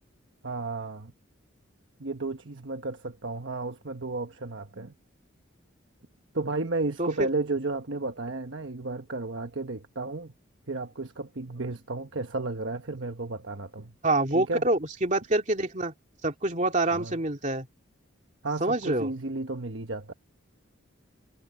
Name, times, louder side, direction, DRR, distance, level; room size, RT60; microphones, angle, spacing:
voice 1, 0.4-1.1 2.0-4.9 6.3-10.3 10.7-13.9 14.3-14.7 16.9-17.2 18.4-20.1, right 3 dB, 65° right, 1.2 m, -33 dB
voice 2, 14.0-15.9 16.2-17.7 18.6-19.1, right 2 dB, 35° right, 2.8 m, -26 dB
head